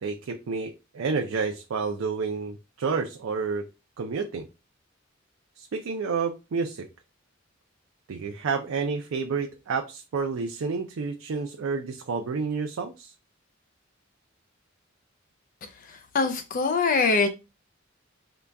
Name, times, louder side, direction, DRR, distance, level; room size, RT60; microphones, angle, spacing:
voice 1, 0.0-3.7 4.0-4.5 5.6-6.9 8.1-13.1, right 5 dB, 85° right, 0.4 m, -30 dB
voice 2, 15.6-17.3, left 4 dB, 45° left, 0.4 m, -24 dB
3.9 x 2.3 x 3.3 m
head